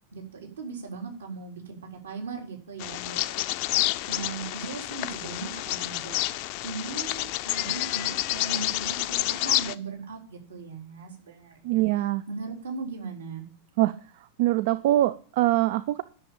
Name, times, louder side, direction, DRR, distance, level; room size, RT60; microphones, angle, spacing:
voice 1, 0.1-3.6 4.1-11.8 12.3-13.5, right 4 dB, 65° right, 1 dB, 4.0 m, -38 dB
Bird vocalization bird call bird song, 2.8-9.7, left 18 dB, 45° left, 0.6 m, -29 dB
voice 2, 11.6-12.2 13.8-13.9 14.4-16.0, right 15 dB, 50° right, 15 dB, 0.6 m, -23 dB
11.0 x 7.0 x 8.7 m, 0.43 s
figure-of-eight pair, 90°, 0 cm